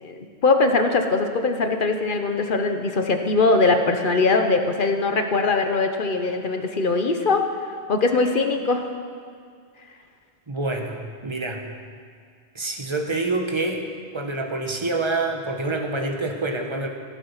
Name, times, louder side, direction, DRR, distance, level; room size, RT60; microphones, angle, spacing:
voice 1, 0.0-7.4 7.9-8.8, left 3 dB, 50° left, 5 dB, 1.1 m, -21 dB
voice 2, 10.5-11.6 12.5-13.8 14.1-16.9, right 2 dB, 25° right, 4 dB, 1.1 m, -27 dB
15.5 x 8.8 x 5.7 m, 2.2 s
omnidirectional pair, 1.2 m